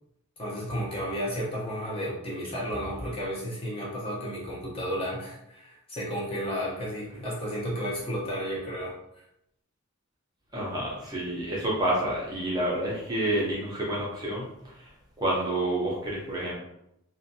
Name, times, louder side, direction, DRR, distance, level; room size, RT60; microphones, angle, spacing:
voice 1, 0.4-8.9, equal, 25° left, -5 dB, 0.7 m, -32 dB
voice 2, 10.5-14.5 14.8-14.9 15.2-16.5, right 1 dB, 20° right, -5 dB, 0.5 m, -29 dB
2.5 x 2.1 x 2.6 m, 0.80 s
head